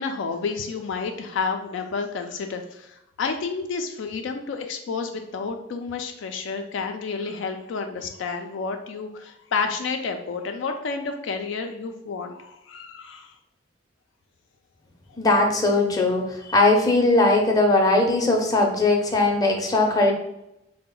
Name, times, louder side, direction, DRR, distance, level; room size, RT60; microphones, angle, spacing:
voice 1, 0.0-13.3, left 4 dB, 70° left, 5 dB, 0.3 m, -30 dB
voice 2, 15.2-20.1, left 2 dB, 20° left, 1 dB, 0.5 m, -19 dB
3.7 x 2.1 x 3.7 m, 0.85 s
head